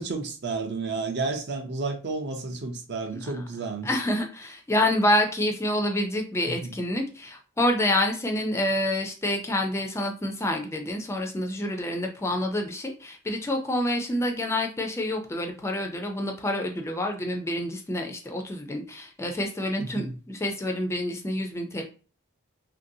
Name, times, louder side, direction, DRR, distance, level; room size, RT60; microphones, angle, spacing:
voice 1, 0.0-3.9 6.5-6.7 19.9-20.2, right 3 dB, 50° right, 0.5 m, -31 dB
voice 2, 3.1-3.4 3.8-21.8, left 1 dB, 15° left, 0.3 m, -27 dB
2.9 x 2.6 x 2.6 m
head